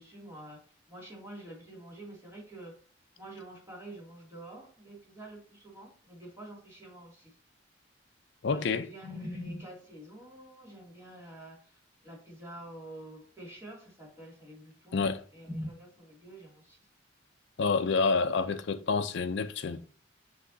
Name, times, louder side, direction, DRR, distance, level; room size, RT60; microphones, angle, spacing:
voice 1, 0.0-2.8 3.2-7.3 8.5-11.8 12.0-15.0 15.3-16.8, equal, 15° right, 2.5 m, -46 dB
voice 2, 8.4-8.9 14.9-15.2 17.6-19.8, left 4 dB, 60° left, 0.4 m, -28 dB
6.1 x 5.9 x 2.7 m
head